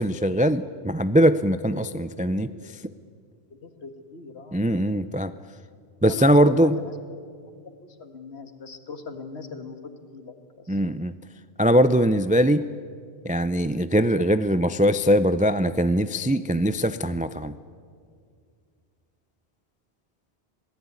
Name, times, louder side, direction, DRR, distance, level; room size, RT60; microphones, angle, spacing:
voice 1, 0.0-2.5 2.8-2.9 4.5-5.3 6.0-6.8 10.7-11.1 11.6-12.7 13.2-17.5, equal, 15° right, 12 dB, 0.3 m, -21 dB
voice 2, 3.5-4.6 6.1-7.0 7.3-7.5 7.8-9.8 10.1-10.8, left 5 dB, 70° left, 7 dB, 2.1 m, -40 dB
27.0 x 17.5 x 9.6 m, 2.2 s
omnidirectional pair, 1.1 m